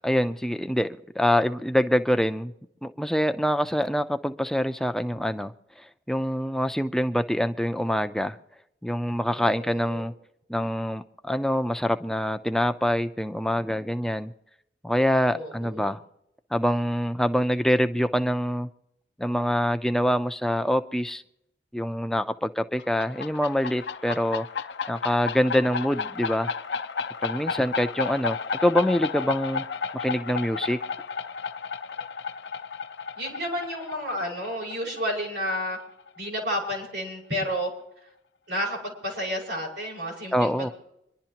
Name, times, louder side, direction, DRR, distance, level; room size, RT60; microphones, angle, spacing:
voice 1, 0.0-2.5 2.8-5.5 6.1-8.4 8.8-10.1 10.5-14.3 14.8-16.0 16.5-18.7 19.2-21.2 21.7-24.5 24.9-26.5 27.2-29.6 29.9-30.8 40.3-40.7, equal, 5° left, 9 dB, 0.5 m, -25 dB
voice 2, 9.4-10.0 15.3-15.9 31.8-32.0 33.2-35.8 36.2-37.7 38.5-40.7, equal, 85° right, -1 dB, 5.7 m, -31 dB
sound 1, 22.8-36.2, left 5 dB, 75° left, 0.7 m, -33 dB
25.0 x 11.5 x 2.9 m, 0.79 s
head